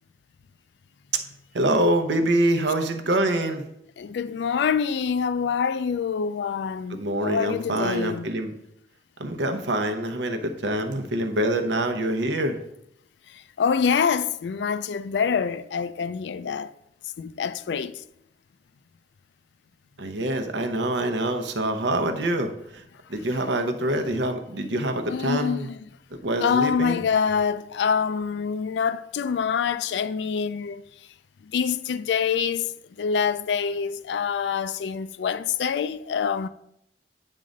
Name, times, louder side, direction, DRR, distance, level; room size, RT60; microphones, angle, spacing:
voice 1, 1.5-3.6 6.9-8.5 9.2-12.6 20.0-22.8 23.1-25.7 26.2-27.0, right 1 dB, 85° right, 0.8 m, -25 dB
voice 2, 4.0-8.3 13.3-16.7 17.2-18.0 25.1-25.8 26.4-30.8 31.5-32.7 33.0-36.5, left 6 dB, 75° left, 0.3 m, -26 dB
9.0 x 3.8 x 5.2 m
head